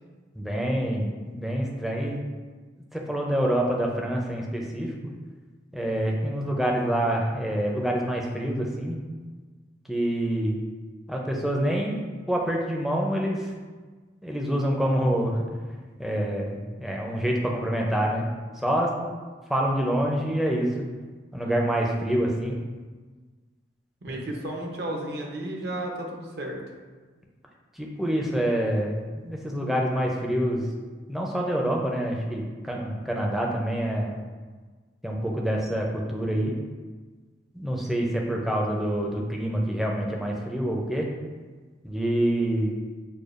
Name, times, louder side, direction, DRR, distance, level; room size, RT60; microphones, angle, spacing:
voice 1, 0.3-2.2 2.9-4.9 5.7-9.0 9.9-10.6 11.1-13.5 14.2-15.4 16.0-18.3 18.5-18.9 19.5-20.7 21.3-22.6 24.1-24.2 27.7-30.7 31.1-34.2 35.0-36.5 37.5-41.1 41.8-42.7, right 1 dB, ahead, -1 dB, 0.4 m, -26 dB
voice 2, 24.0-26.6, right 1 dB, 60° right, 0 dB, 0.7 m, -33 dB
6.5 x 2.2 x 2.5 m, 1.4 s
head